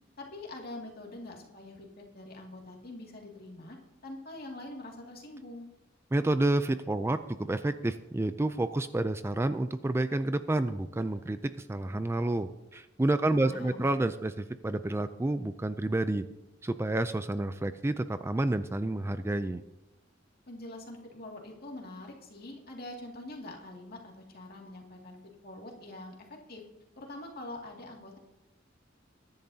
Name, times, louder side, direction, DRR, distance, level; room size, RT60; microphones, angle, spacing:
voice 1, 0.2-3.8 4.0-5.7 13.3-13.9 20.5-25.2 25.4-26.2 26.5-26.6 27.0-28.2, left 1 dB, 55° left, 0 dB, 2.3 m, -44 dB
voice 2, 6.1-16.2 16.6-19.6, right 2 dB, 15° right, 11 dB, 0.3 m, -29 dB
22.0 x 10.5 x 2.8 m, 0.98 s
head